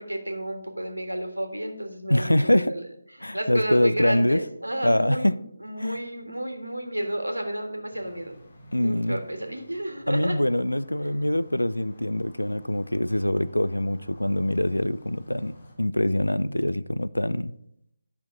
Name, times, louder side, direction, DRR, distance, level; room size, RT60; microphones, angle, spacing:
voice 1, 0.0-2.8 3.3-8.3 8.8-10.4 11.0-11.2, right 1 dB, 80° right, 1.6 m, -31 dB
voice 2, 2.1-2.7 3.2-4.4 4.8-5.4 5.8-6.0 8.7-9.2 10.1-17.5, left 1 dB, 80° left, 0.4 m, -24 dB
sound 1, 7.9-15.7, equal, 45° left, 2.3 m, -51 dB
10.5 x 5.7 x 3.9 m
figure-of-eight pair, 150°, 0 cm